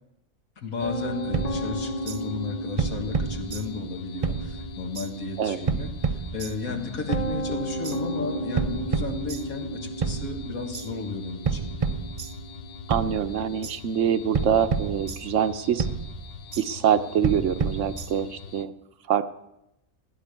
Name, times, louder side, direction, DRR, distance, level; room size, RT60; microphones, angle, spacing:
voice 1, 0.6-11.7, left 3 dB, 80° left, 5 dB, 2.2 m, -34 dB
sound 1, 0.8-18.7, left 9 dB, 65° left, 1.0 m, -44 dB
Piano, 0.8-17.9, equal, 40° left, 0.6 m, -36 dB
sound 2, 1.3-2.2 2.8-3.9 4.2-5.1 5.7-6.8 7.1-8.0 8.6-9.7 10.0-10.9 11.5-12.6 12.9-13.8 14.3-15.5 15.8-16.7 17.2-18.4, right 5 dB, 40° right, 0.5 m, -30 dB
voice 2, 12.9-15.9 16.6-18.7 19.1-19.3, right 8 dB, 65° right, 12 dB, 1.0 m, -25 dB
16.0 x 10.0 x 8.2 m, 0.87 s
omnidirectional pair, 1.5 m